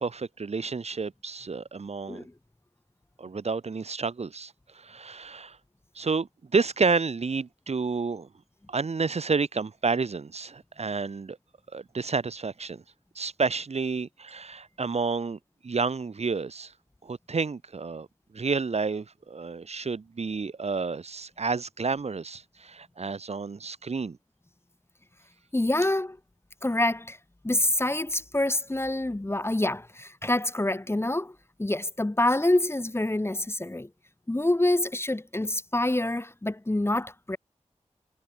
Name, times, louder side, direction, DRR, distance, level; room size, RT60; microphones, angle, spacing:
voice 1, 0.0-2.3 3.2-5.6 6.0-6.3 6.5-8.3 8.7-11.4 11.7-12.8 13.2-15.4 15.6-16.7 17.0-18.1 18.3-24.2, right 4 dB, 60° right, 0.7 m, -30 dB
voice 2, 25.5-26.2 26.6-27.2 27.4-33.9 34.3-37.4, left 1 dB, 20° left, 0.9 m, -26 dB
wide cardioid pair, 65°, 12 cm